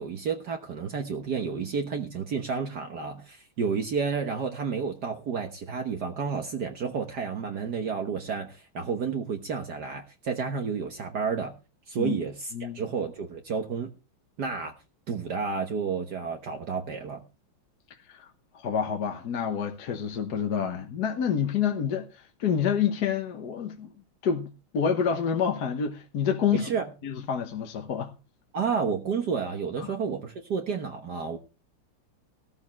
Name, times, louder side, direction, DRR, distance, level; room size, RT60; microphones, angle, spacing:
voice 1, 0.0-11.5 11.9-13.9 14.4-14.7 15.1-17.2 26.5-26.9 28.5-31.4, right 5 dB, 55° right, 1.7 m, -31 dB
voice 2, 18.5-23.9 24.2-26.7 27.0-28.1 29.8-29.9, left 7 dB, 55° left, 1.6 m, -28 dB
16.0 x 13.5 x 3.1 m
omnidirectional pair, 2.2 m